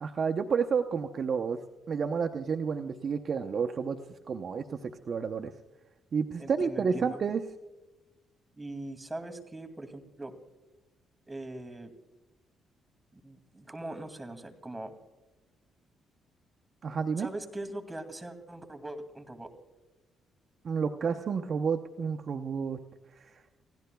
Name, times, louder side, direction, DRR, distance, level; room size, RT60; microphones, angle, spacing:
voice 1, 0.0-1.6 1.9-4.0 4.3-5.5 6.1-7.4 16.8-17.3 20.6-22.8 23.2-23.3, right 6 dB, 50° right, 7 dB, 0.8 m, -30 dB
voice 2, 6.4-7.2 8.6-10.3 11.3-11.9 13.1-14.9 17.2-19.5, right 2 dB, 15° right, 6 dB, 2.4 m, -41 dB
30.0 x 16.5 x 2.3 m, 1.1 s
cardioid pair, 90°, 0 cm